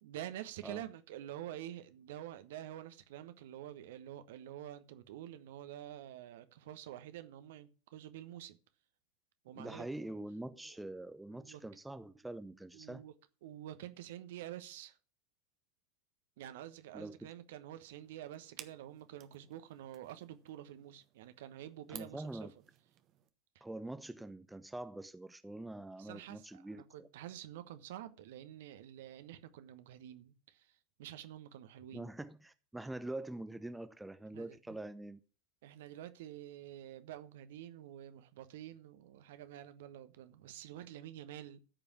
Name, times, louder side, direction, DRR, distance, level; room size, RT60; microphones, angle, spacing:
voice 1, 0.0-8.6 9.4-10.0 11.3-11.6 12.7-13.1 13.4-15.0 16.4-22.5 23.5-23.6 26.0-32.1 34.3-34.8 35.6-41.6, right 12 dB, 55° right, 1.1 m, -48 dB
voice 2, 9.6-13.0 16.9-17.2 21.9-22.5 23.6-27.1 31.9-35.2, right 1 dB, 5° right, 0.8 m, -45 dB
sound 1, 17.8-23.3, right 12 dB, 35° right, 1.2 m, -57 dB
14.0 x 5.3 x 7.0 m
figure-of-eight pair, 90°, 0 cm